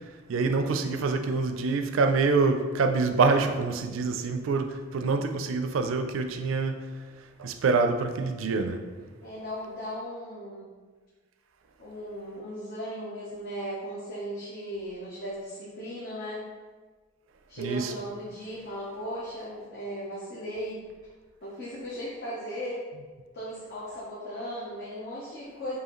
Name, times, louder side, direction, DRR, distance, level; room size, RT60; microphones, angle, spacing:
voice 1, 0.3-6.8 7.4-8.8 17.6-17.9, right 4 dB, 80° right, 7 dB, 0.4 m, -26 dB
voice 2, 9.2-10.7 11.8-16.5 17.5-20.8 21.4-22.8 23.3-25.8, equal, 55° left, -8 dB, 0.8 m, -37 dB
4.7 x 2.7 x 3.0 m, 1.4 s
head